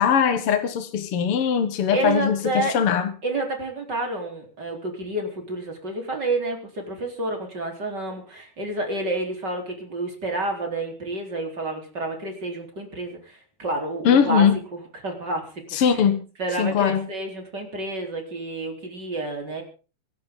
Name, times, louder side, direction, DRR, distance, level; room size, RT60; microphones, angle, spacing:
voice 1, 0.0-3.1 14.0-14.6 15.7-16.3 16.6-17.0, left 7 dB, 55° left, 1.6 m, -20 dB
voice 2, 1.9-2.8 3.2-15.6 15.9-16.0 16.4-19.6, right 2 dB, 30° right, 4.2 m, -29 dB
26.0 x 11.5 x 3.8 m
omnidirectional pair, 4.3 m